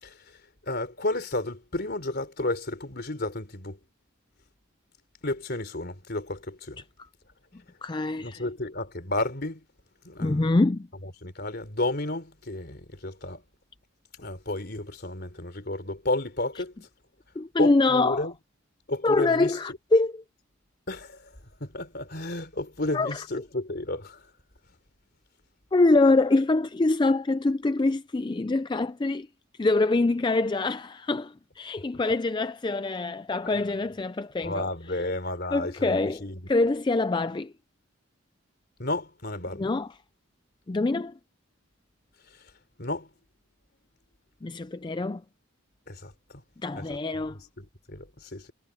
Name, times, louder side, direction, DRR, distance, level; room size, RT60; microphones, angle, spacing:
voice 1, 0.0-3.8 5.2-6.8 8.2-9.6 10.0-10.5 11.0-13.4 14.2-16.9 17.6-18.3 18.9-19.6 20.9-24.3 34.4-36.5 38.8-39.7 42.3-42.5 42.8-43.1 45.9-46.4 46.8-47.0 47.3-48.5, left 2 dB, 50° left, 3.5 m, -32 dB
voice 2, 7.8-8.4 10.2-10.9 17.4-18.2 19.0-20.1 22.9-23.1 25.7-29.3 29.6-34.6 35.5-36.2 36.5-37.5 39.6-39.9 40.7-41.1 44.4-45.2 46.6-47.4, left 2 dB, 20° left, 0.4 m, -24 dB
head